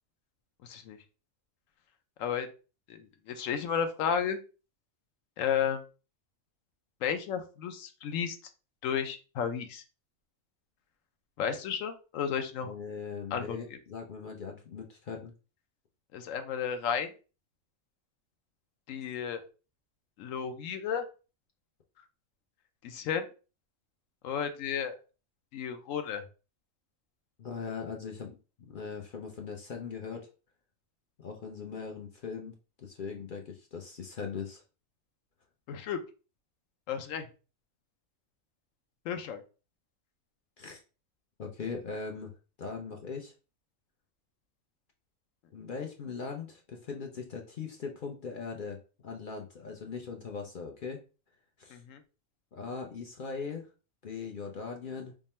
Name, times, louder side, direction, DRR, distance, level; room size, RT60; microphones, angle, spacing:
voice 1, 0.6-1.0 2.2-2.5 2.9-4.4 5.4-5.8 7.0-8.4 8.8-9.8 11.4-12.7 13.3-13.6 16.1-17.1 18.9-19.4 20.2-21.0 22.8-23.3 24.2-25.0 25.5-26.2 35.7-36.0 36.9-37.3 39.0-39.4 51.7-52.0, left 7 dB, 75° left, 8 dB, 1.0 m, -33 dB
voice 2, 12.6-15.3 27.4-30.2 31.2-34.6 40.6-40.8 41.4-42.3 42.6-43.3 45.5-51.0 51.6-51.8 52.5-53.7 54.0-55.1, left 5 dB, 55° left, 2 dB, 0.6 m, -40 dB
3.6 x 2.0 x 4.1 m, 0.34 s
omnidirectional pair, 1.4 m